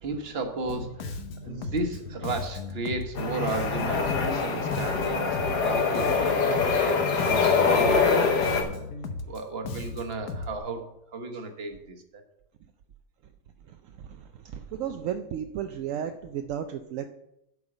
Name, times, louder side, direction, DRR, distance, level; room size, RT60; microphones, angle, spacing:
voice 1, 0.0-8.7 9.2-10.8 11.1-12.2, right 3 dB, 40° right, 5 dB, 1.3 m, -34 dB
Bass guitar, 0.7-10.6, left 3 dB, 70° left, 1.3 m, -36 dB
sound 1, 3.1-8.6, left 4 dB, 85° left, 1.8 m, -24 dB
voice 2, 13.7-17.1, right 9 dB, 70° right, 7 dB, 0.8 m, -34 dB
8.0 x 5.4 x 7.7 m, 0.86 s
omnidirectional pair, 1.8 m